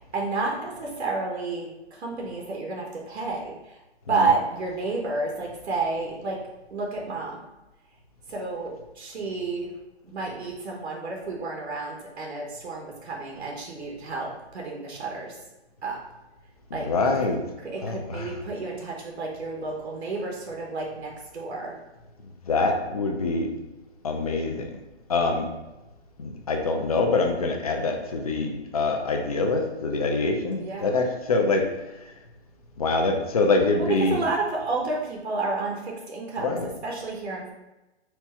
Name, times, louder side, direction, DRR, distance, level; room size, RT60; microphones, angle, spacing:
voice 1, 0.1-3.5 4.1-6.4 6.7-7.4 8.3-9.7 10.0-15.3 15.8-16.0 16.7-16.9 17.6-21.7 30.6-30.9 33.9-36.6 36.8-37.5, right 3 dB, 70° right, -1 dB, 1.1 m, -30 dB
voice 2, 16.8-17.4 17.8-18.4 22.5-23.5 24.0-24.7 25.1-25.5 26.2-31.6 32.8-34.2 36.4-36.7, left 3 dB, 35° left, 2 dB, 0.5 m, -25 dB
4.5 x 2.3 x 4.2 m, 1.0 s
hypercardioid pair, 165°, 34 cm